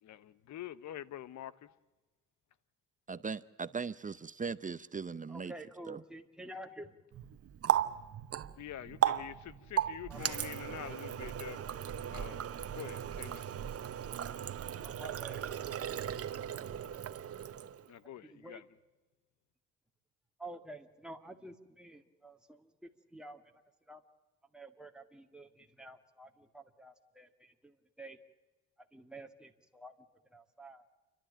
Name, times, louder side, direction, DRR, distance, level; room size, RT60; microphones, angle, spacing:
voice 1, 0.0-1.7 8.5-11.6 12.1-12.4 12.7-13.5 17.9-18.6, left 11 dB, 70° left, 1.1 m, -46 dB
voice 2, 3.1-5.5 5.9-6.0, right 5 dB, 25° right, 0.7 m, -39 dB
voice 3, 5.3-7.0 10.1-10.2 14.8-15.5 18.2-18.6 20.4-23.5 23.9-24.0 24.5-28.2 28.9-29.9 30.3-30.9, right 1 dB, 5° right, 2.0 m, -50 dB
Water tap faucet, 7.1-17.9, right 10 dB, 50° right, 1.1 m, -36 dB
29.5 x 12.5 x 8.8 m
cardioid pair, 90°, 30 cm